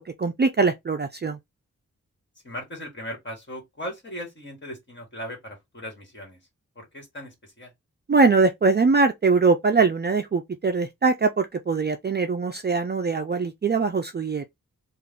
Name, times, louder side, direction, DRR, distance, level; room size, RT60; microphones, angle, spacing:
voice 1, 0.0-1.4 8.1-14.5, right 4 dB, 30° right, 0.4 m, -22 dB
voice 2, 2.4-6.4 6.8-7.7, equal, 35° left, 1.8 m, -38 dB
3.4 x 2.5 x 3.6 m
wide cardioid pair, 115°, 32 cm